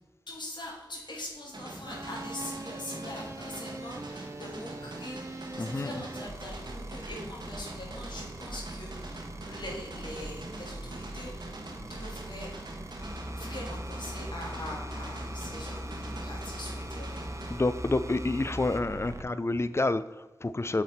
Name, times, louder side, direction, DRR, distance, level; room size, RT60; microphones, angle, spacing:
voice 1, 0.3-12.5 13.3-17.6, left 1 dB, 75° left, -3 dB, 1.7 m, -43 dB
sound 1, 1.5-17.5, right 1 dB, 70° right, 1.1 m, -43 dB
sound 2, 1.8-19.2, right 1 dB, 40° right, 0.6 m, -41 dB
voice 2, 5.6-5.9 17.5-20.8, left 2 dB, 35° left, 13 dB, 0.4 m, -29 dB
7.5 x 4.1 x 4.2 m, 1.2 s
wide cardioid pair, 60°, 8 cm